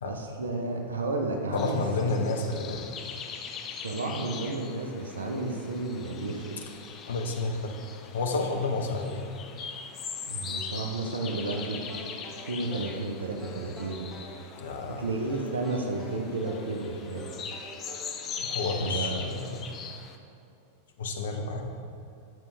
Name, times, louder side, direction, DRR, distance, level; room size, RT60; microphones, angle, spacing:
voice 1, 0.0-2.6 3.8-6.6 10.3-12.0 12.5-14.1 15.0-17.3 18.8-19.2, right 2 dB, 70° right, 2 dB, 0.9 m, -32 dB
voice 2, 1.5-2.9 7.1-7.8 8.1-9.3 14.6-15.0 18.4-19.6 21.0-21.7, left 3 dB, 65° left, 3 dB, 0.8 m, -30 dB
sound 1, 1.6-20.2, left 6 dB, 30° left, 0.6 m, -41 dB
sound 2, 11.5-13.0 13.4-14.4 15.3-16.7 17.2-18.2, equal, 5° right, 1.8 m, -46 dB
9.1 x 6.9 x 3.4 m, 2.7 s
figure-of-eight pair, 90°, 0 cm